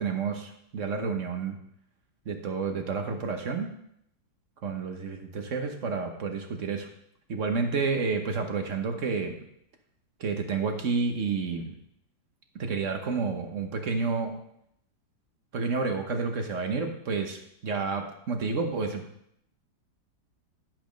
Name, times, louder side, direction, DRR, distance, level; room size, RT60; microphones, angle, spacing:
voice 1, 0.0-1.6 2.2-3.7 4.6-6.9 7.3-9.3 10.2-11.7 12.5-14.3 15.5-19.0, right 4 dB, 45° right, 5 dB, 1.3 m, -30 dB
10.5 x 6.2 x 5.2 m, 0.74 s
omnidirectional pair, 2.1 m